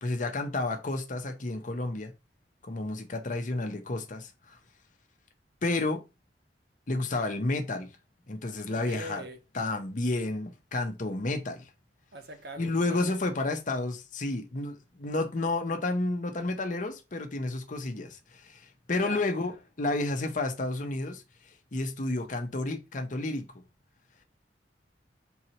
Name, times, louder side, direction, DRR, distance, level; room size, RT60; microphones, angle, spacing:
voice 1, 0.0-2.1 2.6-4.6 5.6-6.0 6.9-7.9 8.3-9.2 9.5-11.7 12.6-19.5 19.8-21.2 21.7-23.6, left 2 dB, 45° left, 0.8 m, -31 dB
voice 2, 8.7-9.4 12.1-13.5 19.0-19.2, right 1 dB, 65° right, 0.9 m, -42 dB
3.9 x 2.9 x 4.3 m
head